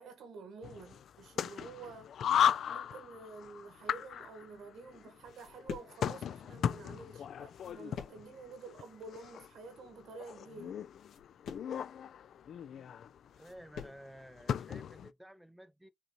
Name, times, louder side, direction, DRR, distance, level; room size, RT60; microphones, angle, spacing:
voice 1, 0.0-2.4 2.7-10.8, right 4 dB, 75° right, 1.7 m, -50 dB
sound 1, 0.6-15.1, left 9 dB, 65° left, 0.3 m, -37 dB
sound 2, 4.9-14.1, left 7 dB, 80° left, 1.5 m, -50 dB
voice 2, 13.3-15.9, equal, 5° right, 0.5 m, -53 dB
5.1 x 2.8 x 3.0 m
cardioid pair, 90°, 0 cm